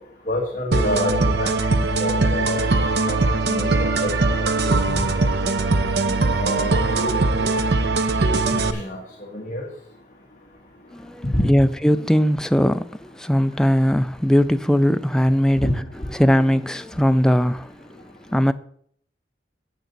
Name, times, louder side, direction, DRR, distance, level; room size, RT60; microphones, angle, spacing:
voice 1, 0.3-2.7 3.1-3.7 4.0-5.0 6.4-7.1 8.4-9.0 9.3-9.7 11.3-11.5 15.6-15.7, left 1 dB, 40° left, 1.6 m, -28 dB
sound 1, 0.7-8.7, right 3 dB, 60° right, 0.7 m, -21 dB
voice 2, 10.9-15.7 16.2-17.9 18.3-18.5, equal, 5° left, 0.3 m, -19 dB
12.5 x 8.0 x 4.0 m
head